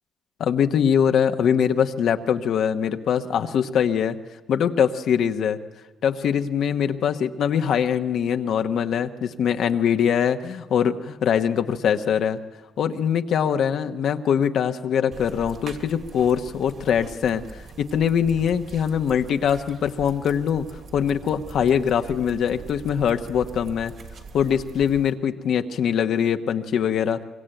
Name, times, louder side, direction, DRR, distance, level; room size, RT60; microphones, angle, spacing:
voice 1, 0.4-4.2 4.5-5.6 6.0-12.4 12.8-20.7 20.9-23.9 24.3-27.2, left 8 dB, 70° left, 6 dB, 1.2 m, -22 dB
sound 1, 15.1-25.1, right 4 dB, 60° right, 2.8 m, -42 dB
24.0 x 23.0 x 9.1 m, 1.1 s
cardioid pair, 90°, 0 cm